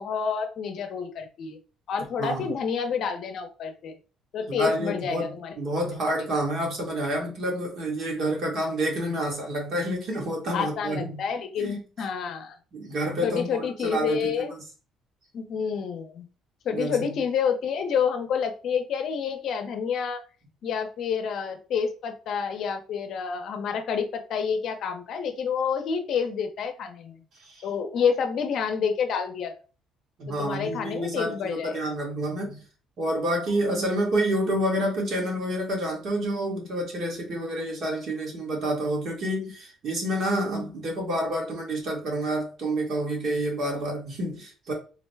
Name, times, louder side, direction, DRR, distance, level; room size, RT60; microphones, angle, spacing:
voice 1, 0.0-1.6 1.9-3.9 4.3-5.5 10.5-12.6 13.2-14.5 15.3-16.3 16.6-20.2 20.6-27.2 27.6-29.5 30.3-31.8, left 6 dB, 60° left, 0.6 m, -28 dB
voice 2, 2.2-2.5 4.5-11.2 11.6-11.8 12.7-14.5 16.7-17.2 27.4-27.7 30.2-32.6 33.0-44.7, right 1 dB, 55° right, 1.5 m, -28 dB
3.8 x 2.1 x 3.3 m
cardioid pair, 115°, 0 cm